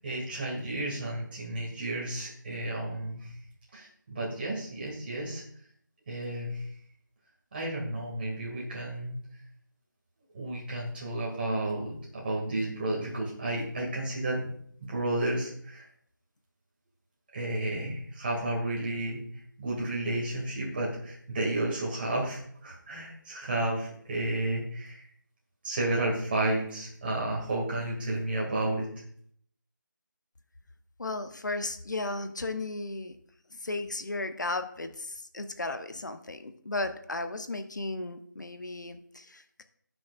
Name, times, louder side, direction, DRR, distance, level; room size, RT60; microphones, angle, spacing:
voice 1, 0.0-3.3 3.7-5.4 6.1-6.7 7.5-9.2 10.3-14.5 14.9-15.9 17.3-19.2 19.6-25.0 25.6-28.9, right 1 dB, 30° right, -3 dB, 2.2 m, -32 dB
voice 2, 31.0-33.2 33.5-39.6, left 2 dB, 65° left, 8 dB, 0.9 m, -35 dB
16.0 x 6.3 x 2.5 m, 0.62 s
figure-of-eight pair, 165°, 11 cm